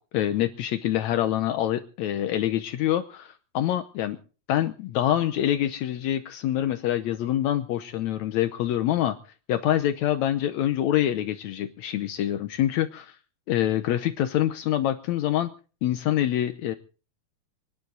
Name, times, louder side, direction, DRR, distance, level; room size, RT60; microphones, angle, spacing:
voice 1, 0.1-4.2 4.5-9.2 9.5-13.2 13.5-15.5 15.8-16.7, left 12 dB, 75° left, 9 dB, 1.7 m, -25 dB
25.0 x 12.0 x 3.9 m, 0.38 s
omnidirectional pair, 4.2 m